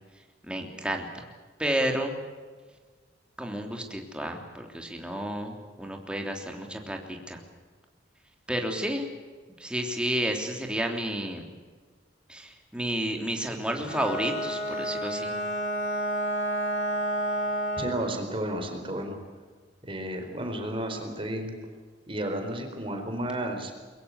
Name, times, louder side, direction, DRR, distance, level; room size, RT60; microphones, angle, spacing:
voice 1, 0.4-1.3 1.6-2.2 3.4-7.4 8.5-9.1 9.6-11.5 12.3-15.4, right 1 dB, 5° right, 3 dB, 3.2 m, -31 dB
Bowed string instrument, 13.8-18.1, right 1 dB, 70° left, 6.1 m, -30 dB
voice 2, 17.8-19.2 19.9-21.5 22.1-23.7, right 1 dB, 30° right, 5 dB, 4.5 m, -32 dB
23.0 x 22.0 x 8.2 m, 1.5 s
head